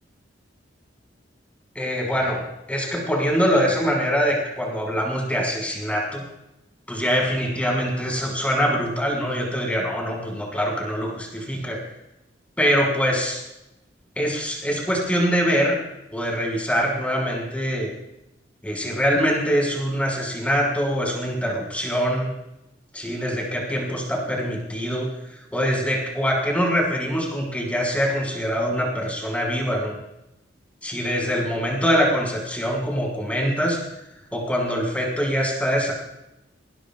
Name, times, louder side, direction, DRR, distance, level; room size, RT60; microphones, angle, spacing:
voice 1, 1.7-2.4 2.7-6.2 6.9-11.8 12.6-13.4 14.2-15.8 16.1-17.9 18.6-22.3 22.9-29.9 30.8-33.8 34.3-35.9, equal, 5° left, -1 dB, 5.9 m, -24 dB
21.5 x 19.0 x 2.5 m, 0.89 s
head